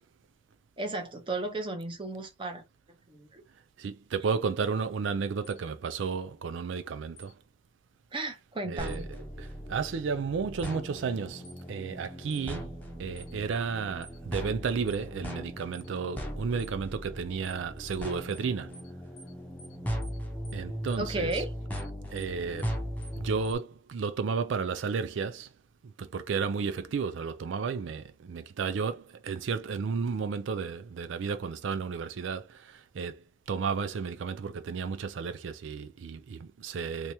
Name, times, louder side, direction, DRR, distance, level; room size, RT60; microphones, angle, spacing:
voice 1, 0.8-3.4 8.1-9.1 21.0-21.5, right 2 dB, 25° right, 0.7 m, -35 dB
voice 2, 3.8-7.3 8.7-9.0 9.4-12.7 13.0-18.8 20.5-21.4 22.1-22.7 23.1-25.5 25.8-37.1, right 5 dB, 70° right, 0.4 m, -33 dB
sound 1, 5.4-5.6 7.2-7.3 8.9-9.0 10.6-10.8 11.4-11.6 12.3-12.5 13.2-13.3 14.0-14.2 14.9-15.0 15.7-15.9 16.6-16.8 17.4-17.6 17.9-18.0 18.3-18.5 18.7-18.9 19.2-19.3 19.6-19.8 20.0-20.2 20.4-20.6 20.9-21.0 21.3-21.5 21.7-21.9 22.2-22.3 22.6-22.8 23.0-23.2 23.4-23.6, equal, 75° left, 0.9 m, -52 dB
sound 2, 8.8-23.5, equal, 10° left, 0.7 m, -38 dB
3.4 x 2.9 x 2.8 m
head